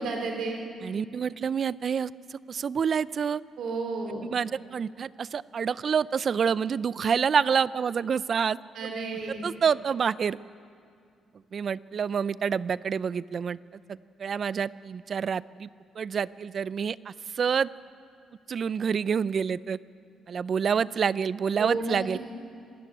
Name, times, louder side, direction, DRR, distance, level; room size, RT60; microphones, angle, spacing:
voice 1, 0.0-0.7 3.6-4.2 8.7-9.4 21.6-22.2, right 3 dB, 75° right, 2 dB, 2.8 m, -32 dB
voice 2, 0.8-3.4 4.3-8.9 9.3-10.4 11.5-13.6 13.9-15.7 16.0-17.7 18.5-19.8 20.3-22.2, right 6 dB, 50° right, 19 dB, 0.5 m, -28 dB
25.0 x 13.0 x 9.5 m, 2.3 s
cardioid pair, 90°, 0 cm